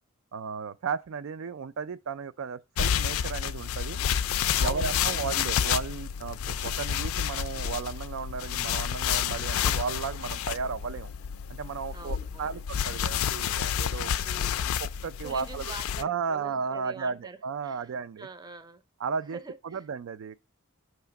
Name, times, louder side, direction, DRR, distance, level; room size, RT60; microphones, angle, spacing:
voice 1, 0.3-4.0 4.6-11.1 11.5-14.1 14.8-15.7 16.0-18.3 19.0-19.4 19.6-20.4, right 5 dB, 70° right, 0.4 m, -34 dB
sound 1, 2.8-16.0, left 9 dB, 85° left, 0.4 m, -30 dB
voice 2, 4.6-5.2 11.9-12.6 14.2-14.6 15.2-17.4 17.6-17.9 18.2-18.8 19.3-19.9, right 3 dB, 20° right, 0.5 m, -44 dB
6.4 x 3.0 x 5.8 m
head